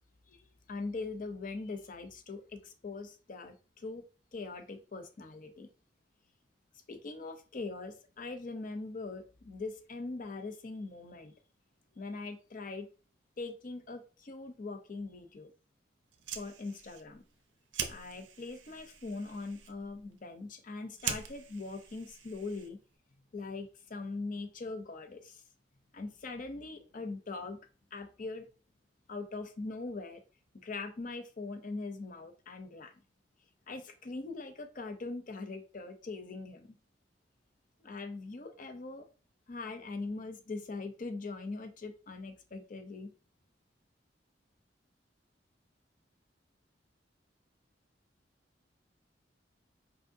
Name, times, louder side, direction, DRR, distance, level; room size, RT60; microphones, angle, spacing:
voice 1, 0.3-4.0 4.3-5.7 6.9-11.3 12.0-12.9 13.4-15.5 16.3-17.2 17.9-22.8 23.3-25.4 25.9-27.6 27.9-28.4 29.1-30.2 30.5-33.0 33.7-36.8 37.8-39.0 39.5-43.1, left 3 dB, 50° left, 7 dB, 0.6 m, -41 dB
Fire, 16.0-23.0, right 7 dB, 85° right, 0.6 m, -43 dB
4.6 x 3.1 x 2.6 m, 0.37 s
head